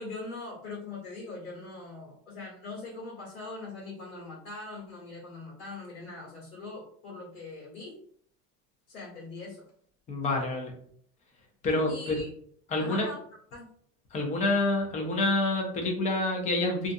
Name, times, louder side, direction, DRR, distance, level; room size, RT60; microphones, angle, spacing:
voice 1, 0.0-8.0 8.9-9.6 11.9-12.3 12.8-13.2 13.5-13.7, left 3 dB, 85° left, -4 dB, 1.3 m, -41 dB
voice 2, 10.1-10.7 11.6-12.2 12.7-13.1 14.1-16.9, left 2 dB, 15° left, 2 dB, 0.5 m, -27 dB
2.5 x 2.4 x 2.5 m, 0.62 s
supercardioid pair, 125°, 44 cm